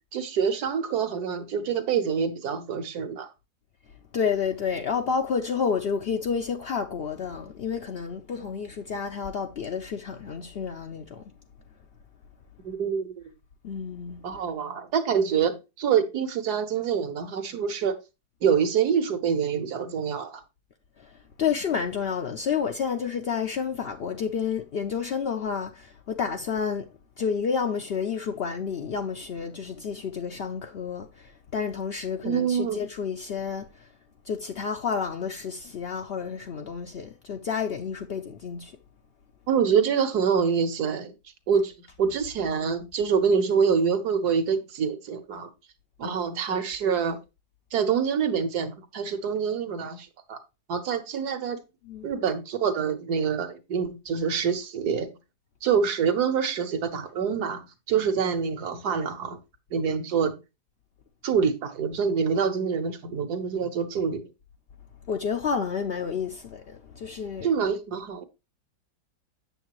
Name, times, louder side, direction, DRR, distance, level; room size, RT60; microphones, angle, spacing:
voice 1, 0.1-3.3 12.6-13.1 14.2-18.0 18.4-20.4 32.2-32.8 39.5-41.1 41.5-45.5 46.0-47.2 47.7-50.4 50.7-51.6 52.0-55.1 55.6-59.4 59.7-60.4 61.2-64.3 67.4-68.2, right 6 dB, 70° right, 1.6 m, -26 dB
voice 2, 4.1-11.2 13.6-14.2 21.0-21.1 21.4-26.9 27.2-33.7 34.3-38.8 46.0-46.2 51.8-52.1 65.1-67.5, left 6 dB, 70° left, 0.5 m, -30 dB
8.0 x 6.7 x 3.0 m
omnidirectional pair, 1.8 m